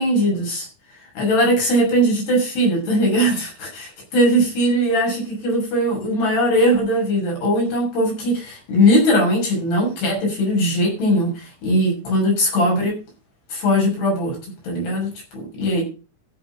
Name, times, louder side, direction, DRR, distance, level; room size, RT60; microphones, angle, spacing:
voice 1, 0.0-13.0 13.5-14.4 14.6-15.8, equal, 60° left, 0 dB, 7.9 m, -20 dB
13.5 x 7.5 x 5.9 m, 0.34 s
omnidirectional pair, 5.4 m